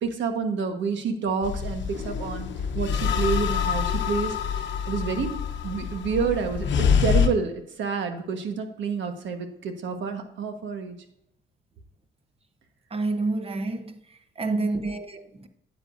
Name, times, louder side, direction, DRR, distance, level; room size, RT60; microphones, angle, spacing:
voice 1, 0.0-2.5 2.7-5.3 5.6-11.0 14.5-14.9, right 5 dB, 70° right, 1.4 m, -29 dB
sound 1, 1.4-7.3, left 7 dB, 70° left, 0.9 m, -26 dB
voice 2, 12.9-14.0 14.4-15.5, right 3 dB, 30° right, 1.0 m, -28 dB
9.7 x 7.6 x 2.6 m
cardioid pair, 90°, 20 cm